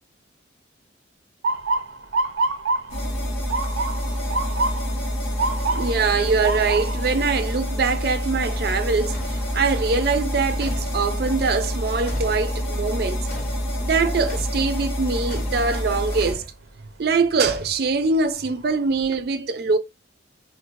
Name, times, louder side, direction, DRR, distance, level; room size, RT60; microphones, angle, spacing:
Motor vehicle (road) / Siren, 1.4-13.3 13.8-14.2 15.0-15.3 17.2-17.4 17.9-18.0 18.4-19.1, right 3 dB, 85° right, 0.7 m, -30 dB
sound 1, 2.9-16.3, equal, 85° left, 1.3 m, -27 dB
voice 1, 5.7-13.3 13.8-16.4 17.0-19.8, right 4 dB, 55° right, 0.4 m, -23 dB
sound 2, 9.1-9.5 10.6-11.0 12.1-12.5 13.3-13.7 14.3-14.6 15.3-15.7 16.2-16.5 17.4-18.0, left 1 dB, 40° left, 1.1 m, -38 dB
4.4 x 2.1 x 2.6 m
head